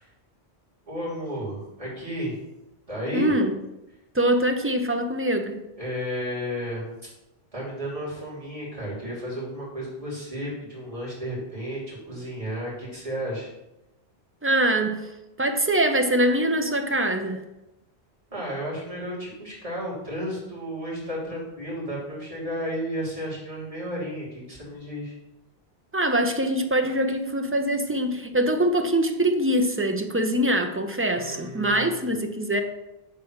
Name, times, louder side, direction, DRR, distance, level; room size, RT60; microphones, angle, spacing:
voice 1, 0.9-2.4 2.9-3.3 5.8-6.9 7.5-13.5 18.3-25.1 31.1-32.1, equal, 35° right, -6 dB, 3.1 m, -33 dB
voice 2, 3.1-3.5 4.1-5.6 14.4-15.1 15.4-17.4 25.9-32.6, right 1 dB, 15° right, 5 dB, 0.5 m, -23 dB
7.4 x 3.6 x 6.4 m, 0.93 s
omnidirectional pair, 1.1 m